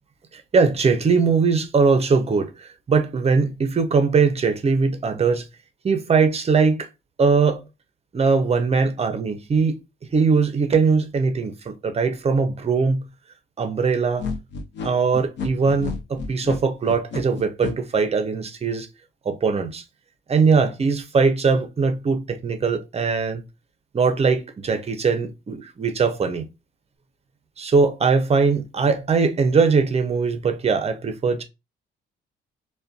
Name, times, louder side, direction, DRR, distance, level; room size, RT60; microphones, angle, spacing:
voice 1, 0.3-5.5 5.8-6.9 7.2-7.6 8.1-9.8 10.1-13.0 13.6-14.3 14.8-18.9 19.3-19.8 20.3-23.4 23.9-26.5 27.6-31.4, right 5 dB, 30° right, 0.6 m, -21 dB
sound 1, 14.2-17.7, left 5 dB, 65° left, 0.6 m, -31 dB
2.4 x 2.2 x 2.4 m
cardioid pair, 90°, 20 cm